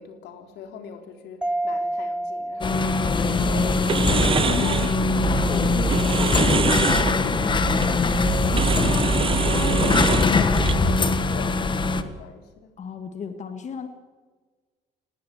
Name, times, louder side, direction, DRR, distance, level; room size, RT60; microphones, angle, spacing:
voice 1, 0.0-4.8 9.0-12.7, left 6 dB, 85° left, 6 dB, 3.4 m, -41 dB
Mallet percussion, 1.4-3.9, right 1 dB, 5° right, 0.9 m, -30 dB
sound 1, 2.6-12.0, left 4 dB, 30° left, 1.5 m, -22 dB
sound 2, 3.3-11.0, right 7 dB, 30° right, 0.7 m, -25 dB
voice 2, 4.5-8.8 12.8-13.9, left 6 dB, 45° left, 8 dB, 1.8 m, -36 dB
19.5 x 18.0 x 8.2 m, 1.4 s
cardioid pair, 110°, 17 cm